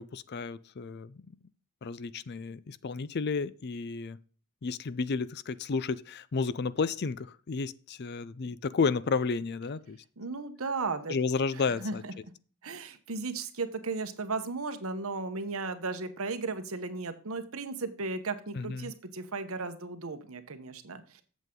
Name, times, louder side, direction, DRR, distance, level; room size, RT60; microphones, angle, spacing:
voice 1, 0.0-1.4 1.8-4.2 4.6-10.0 11.1-12.0 18.5-18.9, left 4 dB, 50° left, 0.4 m, -32 dB
voice 2, 10.2-11.1 11.8-12.0 12.6-21.2, right 3 dB, 70° right, 1.0 m, -35 dB
8.2 x 7.3 x 3.8 m
head